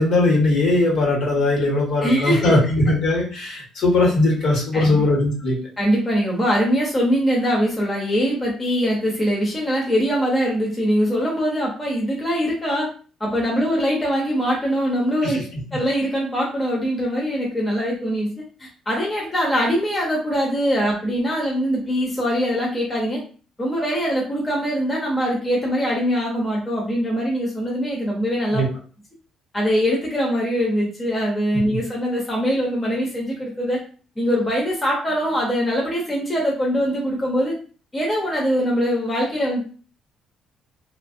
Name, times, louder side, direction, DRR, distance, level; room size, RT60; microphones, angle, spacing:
voice 1, 0.0-5.6 15.2-15.4 28.5-28.7, left 2 dB, 60° left, -2 dB, 1.3 m, -19 dB
voice 2, 2.0-2.6 4.7-5.1 5.8-12.9 13.2-15.4 15.7-18.3 18.6-23.2 23.6-28.6 29.5-33.8 34.2-37.5 37.9-39.6, equal, 15° left, -2 dB, 0.7 m, -22 dB
2.7 x 2.5 x 2.6 m, 0.39 s
cardioid pair, 150°, 0 cm